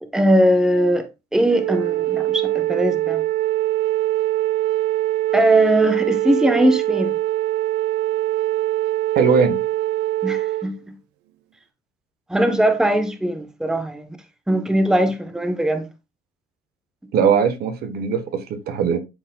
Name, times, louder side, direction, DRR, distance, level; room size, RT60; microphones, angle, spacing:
voice 1, 0.0-3.2 5.3-7.2 10.2-10.9 12.3-14.2 14.5-15.9, right 1 dB, 5° right, 0.8 m, -20 dB
Wind instrument woodwind instrument, 1.5-10.7, right 15 dB, 90° right, 0.7 m, -23 dB
voice 2, 9.1-9.6 17.1-19.0, right 6 dB, 65° right, 1.1 m, -20 dB
11.0 x 4.4 x 2.2 m
cardioid pair, 110°, 17 cm